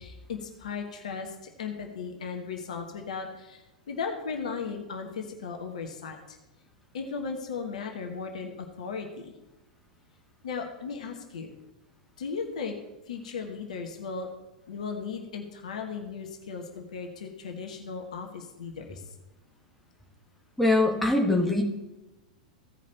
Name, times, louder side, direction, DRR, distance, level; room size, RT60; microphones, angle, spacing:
voice 1, 0.0-6.4 6.9-9.3 10.4-11.5 12.2-12.8 13.1-14.3 14.7-19.0, left 5 dB, 65° left, 4 dB, 1.3 m, -36 dB
voice 2, 20.6-21.6, left 2 dB, 5° left, -1 dB, 1.9 m, -22 dB
16.0 x 5.3 x 4.1 m, 1.0 s
figure-of-eight pair, 95°, 4 cm